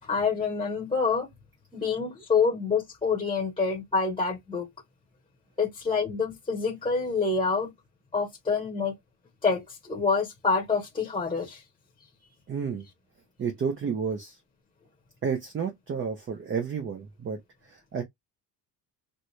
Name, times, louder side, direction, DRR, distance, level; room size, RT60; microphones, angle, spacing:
voice 1, 0.0-1.3 1.7-4.7 5.6-7.7 8.1-8.9 9.4-11.6, left 5 dB, 15° left, 1.0 m, -27 dB
voice 2, 12.5-12.9 13.4-14.4 15.2-17.4 17.6-18.0, right 6 dB, 30° right, 0.7 m, -31 dB
4.3 x 2.1 x 3.2 m
cardioid pair, 150°, 40 cm